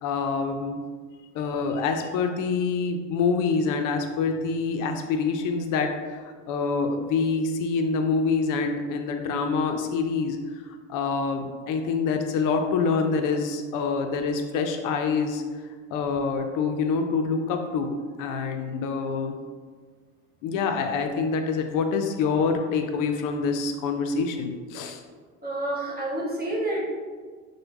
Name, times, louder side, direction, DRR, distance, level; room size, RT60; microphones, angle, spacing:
voice 1, 0.0-0.8 1.3-10.4 10.9-15.4 15.9-19.4 20.4-25.0, left 4 dB, 55° left, 5 dB, 0.5 m, -26 dB
voice 2, 25.4-26.9, right 1 dB, 25° right, -4 dB, 0.7 m, -29 dB
3.3 x 2.2 x 3.0 m, 1.5 s
hypercardioid pair, 75°, 39 cm